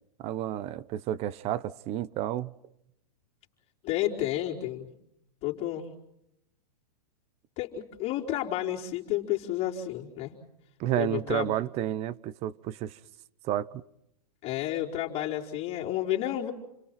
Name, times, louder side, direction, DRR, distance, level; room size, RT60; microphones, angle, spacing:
voice 1, 0.2-2.5 10.8-13.0 13.4-13.8, right 12 dB, 30° right, 0.9 m, -31 dB
voice 2, 3.8-4.9 5.4-5.9 7.6-10.3 11.0-11.6 14.4-16.5, left 13 dB, 30° left, 4.2 m, -31 dB
29.5 x 23.0 x 6.0 m
hypercardioid pair, 140°, 21 cm